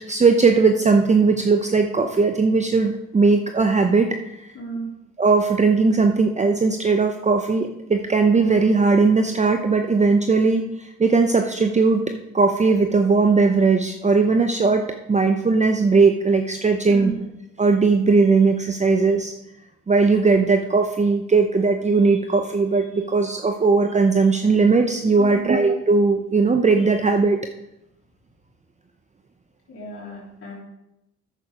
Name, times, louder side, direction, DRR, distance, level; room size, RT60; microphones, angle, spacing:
voice 1, 0.1-4.4 5.2-12.0 12.3-14.8 15.1-17.1 17.6-19.3 19.9-27.4, right 4 dB, 25° right, 5 dB, 0.7 m, -18 dB
voice 2, 4.5-4.9 16.9-17.2 25.2-25.5 29.7-30.5, right 2 dB, 50° left, -7 dB, 3.6 m, -33 dB
9.4 x 6.5 x 5.0 m, 0.87 s
cardioid pair, 90°, 30 cm